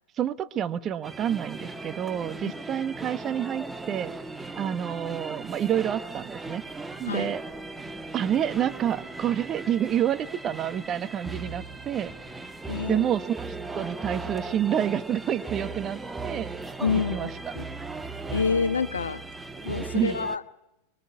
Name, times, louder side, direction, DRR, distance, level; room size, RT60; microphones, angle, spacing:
voice 1, 0.2-4.1 4.6-6.6 7.0-7.4 8.1-12.5 12.9-16.5 17.1-17.3 19.9-20.2, right 10 dB, 30° right, 12 dB, 1.4 m, -28 dB
sound 1, 1.0-20.4, right 3 dB, 10° right, 1.4 m, -37 dB
voice 2, 12.7-13.1 16.8-17.6 18.3-19.2 19.6-20.4, left 5 dB, 70° left, 13 dB, 1.3 m, -28 dB
25.0 x 22.5 x 9.6 m, 0.91 s
figure-of-eight pair, 90°, 0 cm